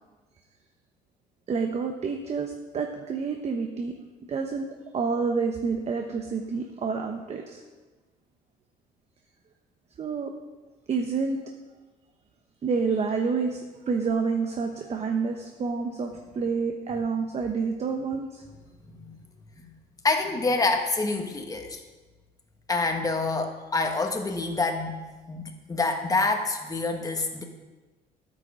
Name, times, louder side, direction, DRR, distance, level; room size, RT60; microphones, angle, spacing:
voice 1, 1.5-3.9 4.3-4.7 4.9-7.6 10.0-10.3 10.9-11.4 12.6-18.4, right 5 dB, 40° right, 4 dB, 1.1 m, -28 dB
voice 2, 20.0-21.8 22.7-25.0 25.3-27.4, left 3 dB, 20° left, 4 dB, 1.6 m, -27 dB
10.5 x 8.6 x 5.0 m, 1.3 s
cardioid pair, 110°, 17 cm